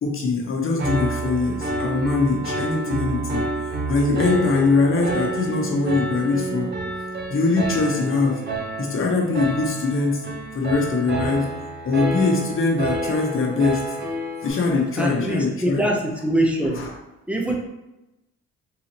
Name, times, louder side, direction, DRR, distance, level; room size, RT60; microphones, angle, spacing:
voice 1, 0.0-3.4 3.9-6.7 7.3-8.4 8.8-11.5 11.8-14.0 14.4-15.8 16.8-16.9, left 3 dB, 45° left, 0 dB, 1.0 m, -22 dB
Piano, 0.8-14.5, right 2 dB, 35° right, 0.8 m, -29 dB
voice 2, 15.0-16.8 17.3-17.5, right 1 dB, 5° right, -1 dB, 0.7 m, -23 dB
3.9 x 2.8 x 2.9 m, 0.96 s
cardioid pair, 90°, 30 cm